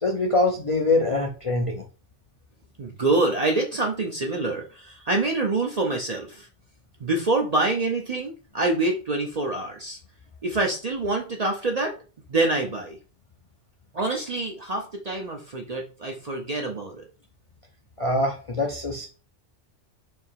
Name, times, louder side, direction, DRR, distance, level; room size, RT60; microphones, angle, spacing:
voice 1, 0.0-1.8 18.0-19.1, left 2 dB, 40° left, 0 dB, 0.5 m, -24 dB
voice 2, 2.8-6.5 7.0-10.0 10.4-11.9 12.3-13.0 13.9-17.1, right 2 dB, 45° right, 1 dB, 0.5 m, -26 dB
3.5 x 2.8 x 4.4 m, 0.36 s
omnidirectional pair, 1.2 m